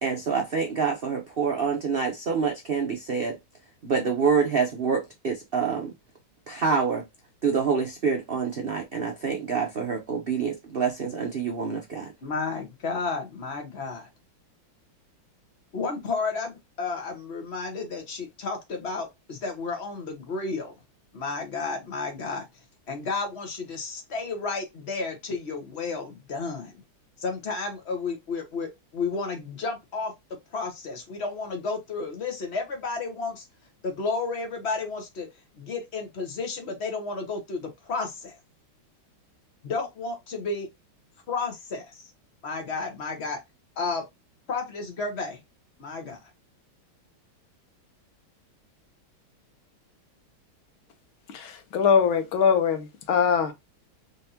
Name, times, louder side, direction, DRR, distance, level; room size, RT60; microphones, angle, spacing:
voice 1, 0.0-3.4 3.8-5.9 6.5-7.1 7.4-12.1, right 5 dB, 65° right, 0.5 m, -26 dB
voice 2, 12.2-14.1 15.7-20.7 21.1-22.5 22.9-26.8 27.2-30.1 30.5-33.4 33.8-35.3 35.6-38.3 39.6-40.7 41.3-42.1 42.4-43.4 43.8-44.0 44.5-45.4 45.8-46.2, left 4 dB, 40° left, 1.2 m, -32 dB
voice 3, 51.3-53.5, left 6 dB, 90° left, 1.7 m, -22 dB
4.0 x 3.5 x 2.7 m
omnidirectional pair, 2.2 m